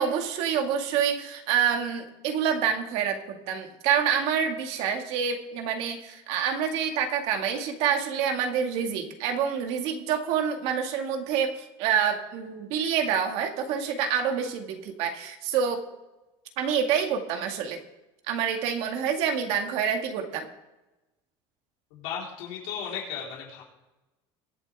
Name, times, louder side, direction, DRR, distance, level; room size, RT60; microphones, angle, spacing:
voice 1, 0.0-15.8 16.6-17.8 18.3-20.5, right 7 dB, 60° right, 4 dB, 2.0 m, -27 dB
voice 2, 21.9-23.6, left 7 dB, 75° left, -4 dB, 4.0 m, -35 dB
22.5 x 8.4 x 3.5 m, 1.0 s
cardioid pair, 165°, 12 cm